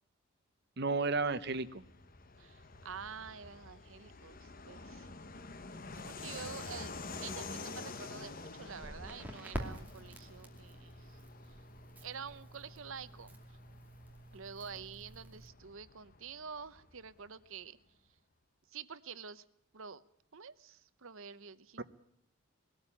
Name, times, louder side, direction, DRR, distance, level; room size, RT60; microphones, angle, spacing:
voice 1, 0.8-1.8 21.8-21.9, right 3 dB, 50° right, 11 dB, 1.1 m, -32 dB
Fixed-wing aircraft airplane, 1.1-17.3, left 3 dB, 40° left, 1.0 m, -49 dB
voice 2, 2.4-5.1 5.9-11.2 12.0-13.6 14.3-17.8 18.7-19.4 19.7-20.0 20.3-21.8, right 6 dB, 65° right, 15 dB, 0.8 m, -48 dB
Crackle, 8.8-15.5, right 1 dB, 10° right, 2.5 m, -47 dB
20.5 x 13.5 x 10.0 m, 0.74 s
head